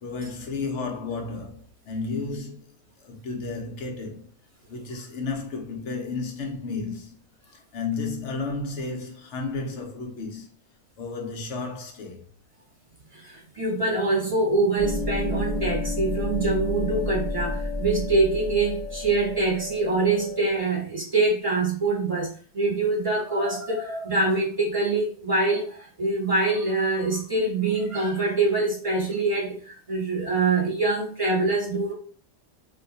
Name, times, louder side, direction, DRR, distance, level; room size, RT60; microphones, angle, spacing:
voice 1, 0.0-2.7 3.0-4.3 4.7-7.2 7.7-10.5 11.0-12.2, left 4 dB, 80° left, 1.1 m, -32 dB
voice 2, 13.2-31.9, right 3 dB, 30° right, 1.1 m, -24 dB
sound 1, 14.8-20.6, left 2 dB, 50° left, 0.6 m, -31 dB
2.7 x 2.3 x 3.8 m
omnidirectional pair, 1.2 m